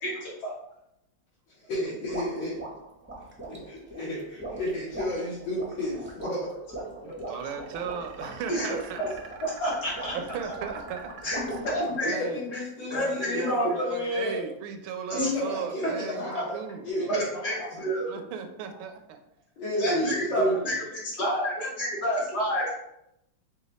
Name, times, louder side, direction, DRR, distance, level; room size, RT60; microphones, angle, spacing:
voice 1, 0.0-0.5 7.0-7.1 7.4-7.5 8.5-8.7 9.4-10.1 11.2-12.1 12.5-12.6 12.9-13.7 15.1-15.3 15.8-15.9 16.3-16.4 17.0-18.1 19.8-20.7 21.0-22.7, equal, 60° left, -6 dB, 1.7 m, -29 dB
voice 2, 1.7-2.7 3.5-6.5 12.0-14.4 15.1-15.9 16.2-16.5 16.8-17.8 19.6-20.6 21.8-21.9, left 1 dB, 85° left, -9 dB, 2.0 m, -32 dB
sound 1, 2.1-12.0, right 2 dB, 15° right, 0.4 m, -40 dB
sound 2, 7.1-12.2, right 5 dB, 65° right, 0.8 m, -47 dB
voice 3, 7.3-9.0 10.1-11.4 12.0-12.4 12.9-16.9 18.0-19.2 20.5-21.1, right 7 dB, 85° right, 7 dB, 1.4 m, -37 dB
5.0 x 2.3 x 4.0 m, 0.81 s
omnidirectional pair, 2.1 m